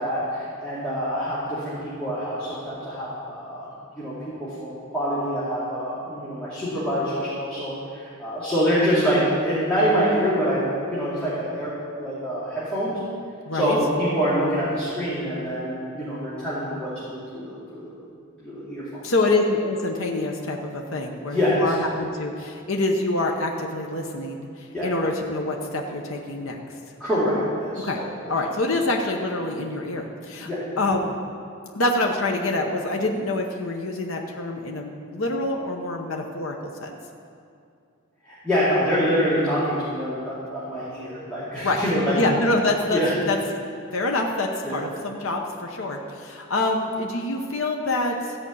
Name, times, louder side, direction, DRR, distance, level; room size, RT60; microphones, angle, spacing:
voice 1, 0.0-3.7 3.9-11.7 12.0-12.9 13.5-17.9 18.4-19.0 21.3-21.7 24.7-24.9 27.0-28.0 30.4-30.6 38.2-42.2 42.9-43.1 44.6-44.8, equal, 5° left, -11 dB, 2.5 m, -25 dB
voice 2, 13.5-13.8 19.0-26.8 27.8-28.0 28.3-30.5 30.8-31.1 31.7-36.6 36.8-37.0 41.6-41.8 42.1-43.0 43.3-43.4 43.9-48.4, left 2 dB, 70° left, 1 dB, 1.0 m, -26 dB
14.5 x 5.2 x 8.6 m, 2.4 s
head